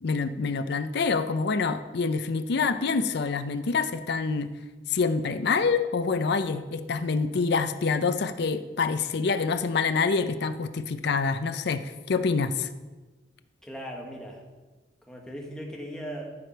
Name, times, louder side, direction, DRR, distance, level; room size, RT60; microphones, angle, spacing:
voice 1, 0.0-4.5 4.9-12.7, left 4 dB, 65° left, 10 dB, 0.5 m, -26 dB
voice 2, 13.6-14.4 15.1-16.4, equal, 5° left, -1 dB, 1.4 m, -38 dB
13.5 x 5.0 x 4.5 m, 1.2 s
head